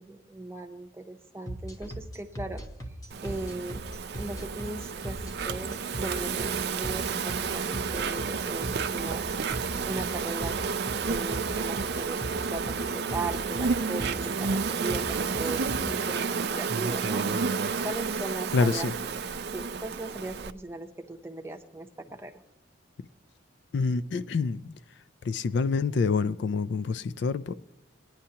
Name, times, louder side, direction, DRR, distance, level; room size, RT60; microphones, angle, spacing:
voice 1, 0.0-2.6 3.2-3.9 4.1-9.3 9.8-10.7 11.0-16.3 16.5-17.3 17.8-18.9 19.5-22.3, right 2 dB, 15° right, 0.7 m, -38 dB
sound 1, 1.5-15.8, right 1 dB, 15° left, 1.0 m, -38 dB
Insect, 3.1-20.5, right 5 dB, 55° right, 0.5 m, -31 dB
voice 2, 18.5-18.9 23.7-24.8 25.2-27.5, left 4 dB, 60° left, 0.3 m, -27 dB
19.5 x 10.0 x 2.8 m
head